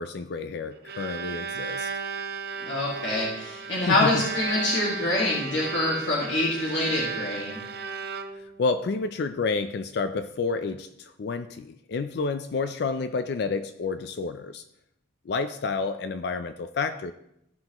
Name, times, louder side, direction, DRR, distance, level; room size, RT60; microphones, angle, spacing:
voice 1, 0.0-1.9 3.9-4.2 8.3-14.6 15.3-17.1, left 4 dB, 55° left, 0.4 m, -30 dB
Bowed string instrument, 0.6-8.7, right 6 dB, 55° right, 0.7 m, -35 dB
voice 2, 2.7-7.6, left 2 dB, 75° left, 1.9 m, -25 dB
15.0 x 5.7 x 3.0 m
head